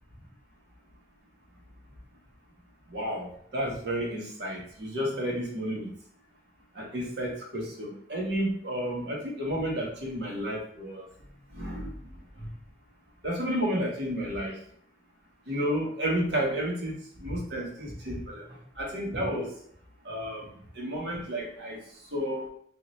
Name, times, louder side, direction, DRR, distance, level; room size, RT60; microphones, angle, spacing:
voice 1, 2.9-5.9 6.8-11.0 11.6-11.9 12.4-12.5 13.2-14.5 15.5-16.9 17.2-18.4 18.8-19.5 20.0-20.4 20.8-21.8 22.1-22.5, equal, 75° right, -2 dB, 1.3 m, -31 dB
4.1 x 2.7 x 3.1 m, 0.63 s
head